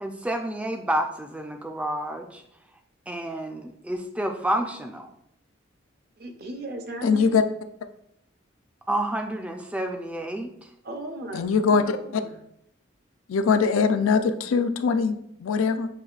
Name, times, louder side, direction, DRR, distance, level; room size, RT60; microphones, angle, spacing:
voice 1, 0.0-2.4 3.1-5.1 8.9-10.5, right 1 dB, 5° right, 4 dB, 0.3 m, -29 dB
voice 2, 6.2-7.4 10.8-12.3, right 1 dB, 50° right, 4 dB, 0.6 m, -37 dB
voice 3, 7.0-7.4 11.3-12.2 13.3-15.9, left 5 dB, 80° left, 9 dB, 0.4 m, -22 dB
6.7 x 3.0 x 2.4 m, 0.76 s
head